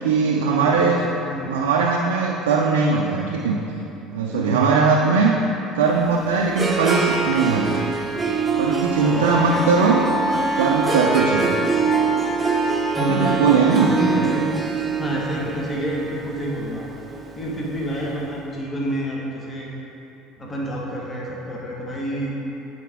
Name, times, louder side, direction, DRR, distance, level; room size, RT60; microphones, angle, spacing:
voice 1, 0.0-1.0 1.5-3.6 4.1-5.4 5.7-7.9 8.5-10.1 10.6-11.6 13.0-14.0, right 5 dB, 90° right, -1 dB, 0.4 m, -20 dB
voice 2, 0.7-1.6 4.3-4.7 9.0-9.3 12.9-13.3 13.8-14.4 15.0-16.9 17.4-19.7 20.4-22.3, right 1 dB, 30° left, -4 dB, 1.4 m, -28 dB
Harp, 5.9-18.0, right 4 dB, 20° right, 0.8 m, -25 dB
Wind instrument woodwind instrument, 9.2-14.0, left 1 dB, 60° left, 0.8 m, -29 dB
8.6 x 4.2 x 3.5 m, 3.0 s
hypercardioid pair, 75°, 0 cm